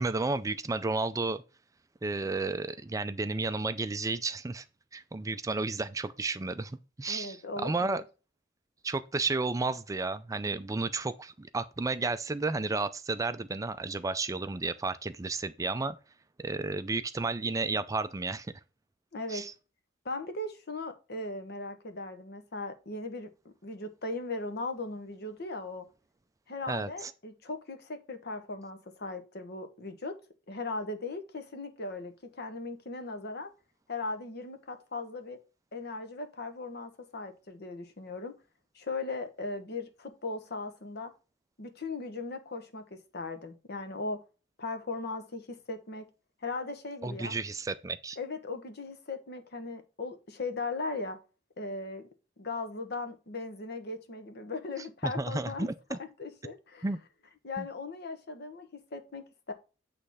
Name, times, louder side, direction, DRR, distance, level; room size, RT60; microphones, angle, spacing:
voice 1, 0.0-1.4 2.0-4.6 4.9-8.0 8.8-16.0 16.4-18.5 19.3-19.5 26.7-27.1 47.0-48.2 54.8-56.0 56.8-57.0 57.6-57.7, right 3 dB, 15° right, 0.4 m, -32 dB
voice 2, 7.1-8.0 19.1-19.4 20.0-25.9 26.5-30.2 30.5-33.5 33.9-35.4 35.7-38.4 38.7-41.1 41.6-44.2 44.6-46.1 46.4-47.3 48.2-51.2 51.6-52.1 52.4-55.7 56.0-56.8 57.4-59.5, left 3 dB, 60° left, 1.2 m, -38 dB
8.5 x 3.3 x 5.5 m
head